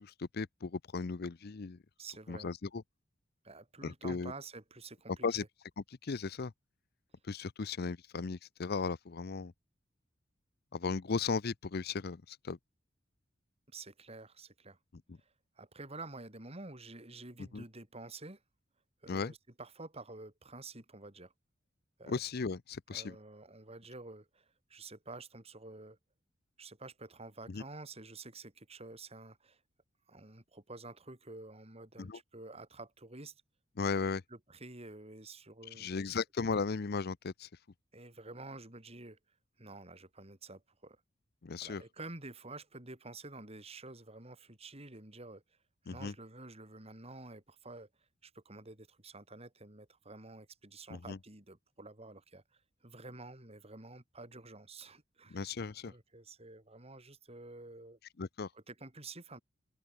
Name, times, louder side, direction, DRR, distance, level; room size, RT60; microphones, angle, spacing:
voice 1, 0.0-1.8 2.3-2.8 3.8-4.3 5.2-5.4 6.0-6.5 7.3-9.5 10.7-12.6 17.5-17.6 19.1-19.3 22.1-23.2 27.5-27.6 32.0-32.2 33.8-34.2 35.8-37.5 41.4-41.8 45.9-46.1 50.9-51.2 55.3-55.9 58.2-58.5, left 4 dB, 55° left, 0.6 m, -36 dB
voice 2, 2.0-2.5 3.4-5.3 13.7-14.8 15.6-18.4 19.0-21.3 22.0-22.2 22.9-26.0 26.6-29.6 30.1-33.3 34.3-36.2 37.9-39.2 39.6-41.0 41.6-45.4 45.8-47.9 48.2-55.5 55.8-58.0 58.5-59.4, right 2 dB, 35° right, 4.3 m, -49 dB
open air
head